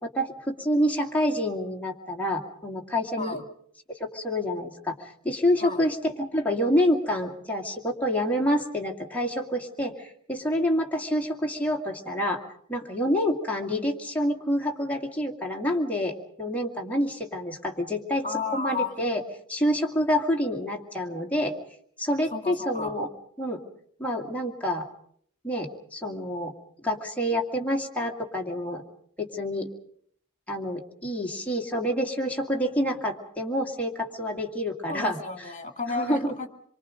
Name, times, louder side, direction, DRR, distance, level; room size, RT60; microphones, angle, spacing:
voice 1, 0.0-3.4 3.9-12.4 12.7-18.3 18.5-19.2 19.5-21.6 22.0-23.1 23.4-23.6 24.0-24.9 25.4-26.5 26.8-28.8 29.2-29.7 30.5-35.2 35.9-36.4, equal, 5° left, 1 dB, 2.4 m, -27 dB
voice 2, 18.2-19.0 22.3-23.0 34.9-36.5, left 4 dB, 35° left, 7 dB, 2.1 m, -32 dB
26.5 x 24.0 x 5.2 m, 0.64 s
head